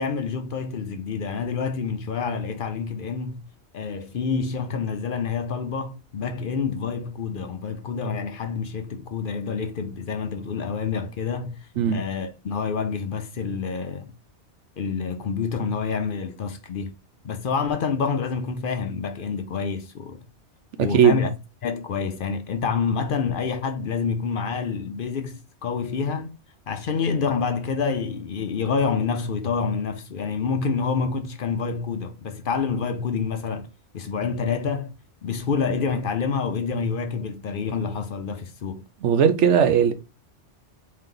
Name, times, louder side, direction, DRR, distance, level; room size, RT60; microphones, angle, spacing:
voice 1, 0.0-3.4 3.7-14.1 14.8-16.9 17.2-20.2 20.8-21.3 21.6-26.3 26.7-33.7 33.9-34.9 35.2-38.8, left 5 dB, 55° left, 0.7 m, -27 dB
voice 2, 20.8-21.2 39.0-39.9, right 7 dB, 90° right, 1.0 m, -18 dB
4.0 x 3.3 x 3.7 m
omnidirectional pair, 1.2 m